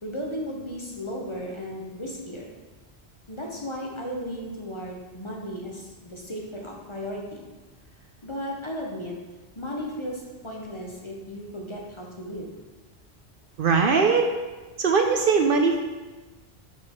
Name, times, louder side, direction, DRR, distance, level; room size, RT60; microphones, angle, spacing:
voice 1, 0.0-2.5 3.3-7.5 8.2-9.2 9.6-12.5, equal, 30° left, -2 dB, 0.9 m, -35 dB
voice 2, 13.6-14.3 14.8-15.8, right 5 dB, 60° right, 3 dB, 0.7 m, -20 dB
5.9 x 4.5 x 4.4 m, 1.2 s
omnidirectional pair, 1.1 m